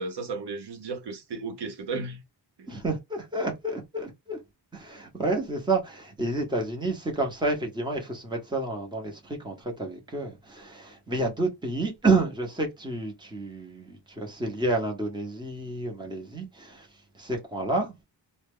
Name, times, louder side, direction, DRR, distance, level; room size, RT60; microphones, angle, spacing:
voice 1, 0.0-2.2 2.6-2.7, right 3 dB, 65° right, 0.7 m, -34 dB
voice 2, 2.7-4.4 4.7-16.9 17.1-17.9, right 2 dB, 10° right, 0.8 m, -29 dB
2.3 x 2.0 x 3.4 m
wide cardioid pair, 135°, 44 cm